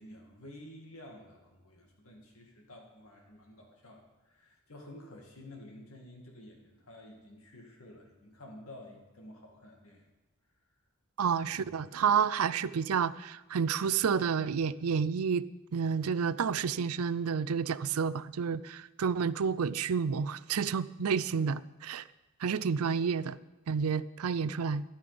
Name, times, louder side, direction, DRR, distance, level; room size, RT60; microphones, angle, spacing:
voice 1, 0.0-10.1, left 1 dB, 70° left, 1 dB, 2.3 m, -51 dB
voice 2, 11.2-15.5 15.7-22.0 22.4-23.4 23.7-24.8, right 6 dB, 85° right, 17 dB, 0.5 m, -30 dB
13.5 x 11.0 x 5.2 m, 1.1 s
head